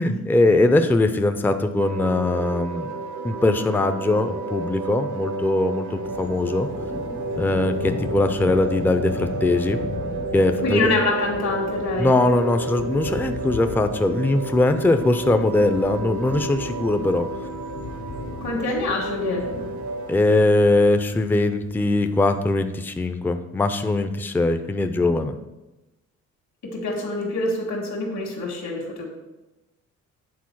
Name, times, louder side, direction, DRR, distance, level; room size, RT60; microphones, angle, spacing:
voice 1, 0.0-3.0 3.2-6.7 7.4-9.8 10.3-10.9 12.0-17.3 20.1-25.3, left 2 dB, 5° left, 8 dB, 0.4 m, -21 dB
sound 1, 1.8-20.2, right 3 dB, 70° right, 0.8 m, -32 dB
sound 2, 6.0-22.1, left 3 dB, 85° left, 1.8 m, -37 dB
voice 2, 10.6-12.2 18.4-19.5 26.6-29.1, left 2 dB, 65° left, 0 dB, 1.8 m, -26 dB
8.4 x 4.0 x 4.6 m, 1.0 s
cardioid pair, 90°, 30 cm